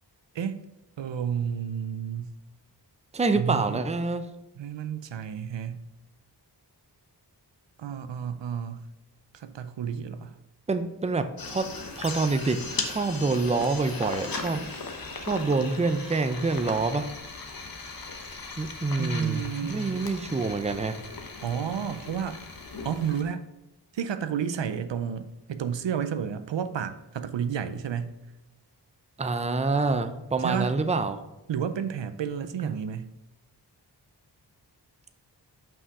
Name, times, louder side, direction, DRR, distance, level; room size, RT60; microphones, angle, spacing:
voice 1, 1.0-2.3 3.3-3.8 4.5-5.9 7.8-8.9 9.3-10.4 19.0-20.1 21.4-22.4 22.8-23.4 23.9-28.2 30.4-30.7 31.5-33.1, right 7 dB, 85° right, 11 dB, 0.6 m, -31 dB
voice 2, 3.1-4.2 10.7-11.7 12.0-14.7 15.2-17.1 18.6-19.4 19.7-21.0 29.2-31.2 32.6-32.7, right 3 dB, 15° right, 9 dB, 0.5 m, -27 dB
sound 1, 11.4-23.2, left 3 dB, 55° left, 1.0 m, -38 dB
5.6 x 5.5 x 4.8 m, 0.94 s
wide cardioid pair, 60°, 42 cm